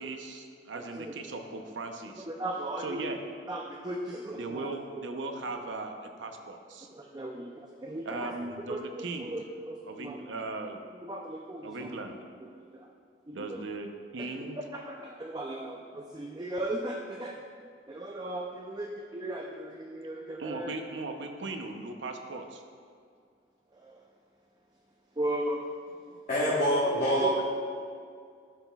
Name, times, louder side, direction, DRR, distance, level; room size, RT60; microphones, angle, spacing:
voice 1, 0.0-2.3 2.8-3.2 4.4-6.9 8.0-9.3 9.9-10.8 11.6-12.2 13.3-13.9 14.1-14.6 20.4-22.6, right 3 dB, 85° right, 5 dB, 0.7 m, -38 dB
voice 2, 0.7-1.1 2.2-3.2 3.5-4.7 5.5-5.6 6.9-8.3 8.6-8.9 9.2-10.2 10.9-12.0 12.4-12.9 13.3-13.6 14.2-14.3 14.6-17.3 17.9-20.7 23.7-24.0 25.2-25.6 26.9-27.4, right 1 dB, 20° right, 0 dB, 0.4 m, -37 dB
voice 3, 26.3-27.4, equal, 40° left, -8 dB, 1.1 m, -25 dB
12.0 x 6.0 x 2.3 m, 2.2 s
head